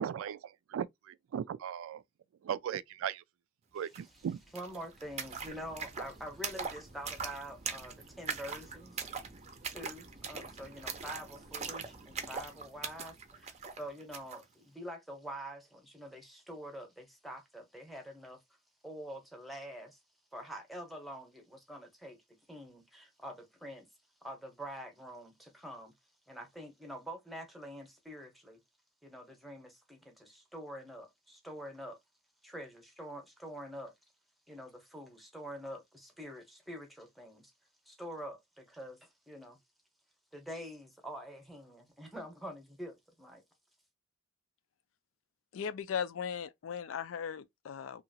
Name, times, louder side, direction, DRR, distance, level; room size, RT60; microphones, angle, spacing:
voice 1, 0.0-2.0 2.4-3.2 3.7-4.4, right 8 dB, 85° right, 0.3 m, -37 dB
sound 1, 3.9-4.0 4.3-14.4, right 5 dB, 35° right, 0.5 m, -42 dB
voice 2, 4.5-9.1 9.7-18.4 18.8-20.0 20.3-22.2 22.5-23.9 24.2-25.9 26.3-28.6 29.0-32.0 32.4-33.9 34.5-37.5 37.9-39.6 40.3-43.4, equal, ahead, 0.8 m, -46 dB
voice 3, 45.5-48.0, left 7 dB, 75° left, 0.4 m, -37 dB
2.9 x 2.4 x 2.6 m
head